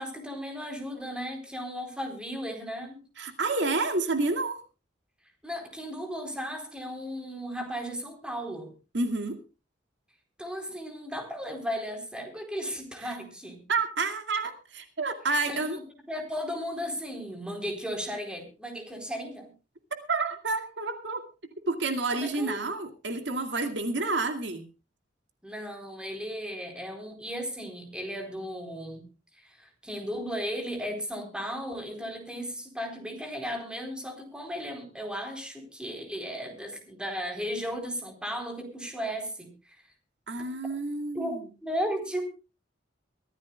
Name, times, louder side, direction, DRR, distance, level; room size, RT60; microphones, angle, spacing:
voice 1, 0.0-3.0 5.4-8.7 10.4-13.6 15.5-15.8 16.1-19.5 22.1-22.7 25.4-29.1 29.3-39.8 41.1-42.3, equal, 5° right, 5 dB, 4.0 m, -35 dB
voice 2, 3.2-4.6 8.9-9.4 13.0-13.2 13.7-15.8 20.1-21.2 21.7-24.6 40.3-41.4, right 3 dB, 70° right, 7 dB, 2.3 m, -29 dB
23.5 x 15.0 x 2.3 m, 0.31 s
head